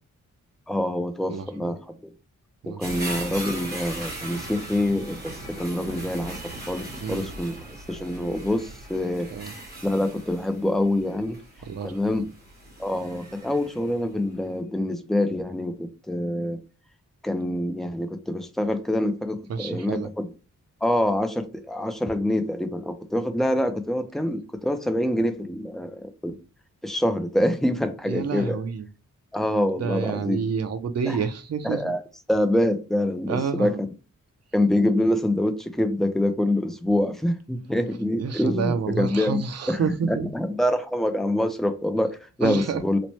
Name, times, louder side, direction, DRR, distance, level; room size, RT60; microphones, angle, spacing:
voice 1, 0.7-1.8 2.7-7.5 7.9-9.3 9.8-11.4 11.8-12.2 12.8-16.6 17.2-20.3 20.8-26.4 26.8-28.6 29.3-30.4 31.7-32.0 32.3-33.9 34.5-39.4 39.7-43.0, left 1 dB, ahead, 0.3 m, -25 dB
voice 2, 1.3-1.7 2.6-2.8 7.0-7.2 9.3-9.5 11.6-12.3 19.5-20.1 28.1-28.9 29.8-31.9 33.3-33.8 38.2-40.3 42.4-42.8, right 6 dB, 55° right, 0.5 m, -29 dB
sound 1, 2.8-14.0 14.5-14.6, right 1 dB, 30° right, 1.3 m, -39 dB
3.0 x 2.1 x 4.1 m
wide cardioid pair, 150°, 31 cm